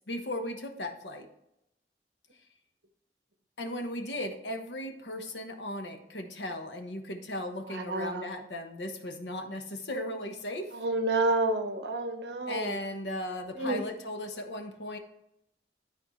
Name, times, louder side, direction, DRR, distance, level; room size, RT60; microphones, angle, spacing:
voice 1, 0.1-1.3 3.6-10.7 12.5-15.0, left 1 dB, 80° left, 5 dB, 1.2 m, -37 dB
voice 2, 7.7-8.3 10.7-12.8 13.6-13.8, right 2 dB, 75° right, 7 dB, 1.0 m, -29 dB
12.5 x 4.3 x 3.2 m, 0.84 s
head